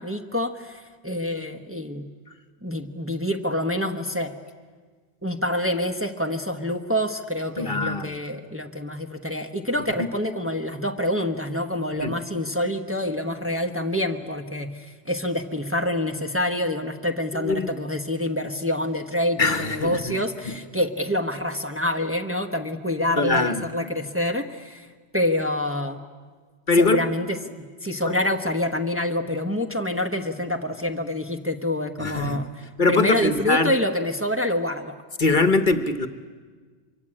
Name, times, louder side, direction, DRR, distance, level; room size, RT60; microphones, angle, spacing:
voice 1, 0.0-2.1 2.6-4.3 5.2-24.9 25.1-26.0 26.8-27.4 27.8-34.9, left 1 dB, 10° right, 4 dB, 1.1 m, -27 dB
voice 2, 7.6-8.1 12.0-12.1 17.3-17.7 19.4-20.1 20.4-20.6 23.2-23.7 26.7-27.1 28.1-28.2 32.0-32.4 32.8-33.7 35.2-36.1, left 3 dB, 50° left, 10 dB, 1.2 m, -22 dB
24.0 x 24.0 x 8.7 m, 1.5 s
omnidirectional pair, 1.1 m